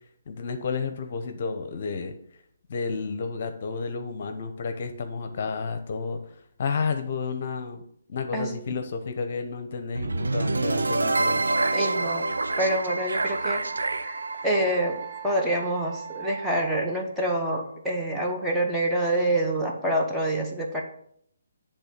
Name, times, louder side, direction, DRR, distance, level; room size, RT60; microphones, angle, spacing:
voice 1, 0.3-2.1 2.7-7.8 8.1-11.4, left 5 dB, 50° left, 8 dB, 0.8 m, -31 dB
sound 1, 9.9-16.0, right 2 dB, 85° right, 0.6 m, -27 dB
voice 2, 11.7-12.3 12.6-13.6 14.0-14.2 14.4-20.8, right 1 dB, 5° right, -3 dB, 1.1 m, -26 dB
Wind instrument woodwind instrument, 13.2-17.0, right 7 dB, 50° right, 1.2 m, -39 dB
8.1 x 3.6 x 6.6 m, 0.68 s
hypercardioid pair, 150°, 0 cm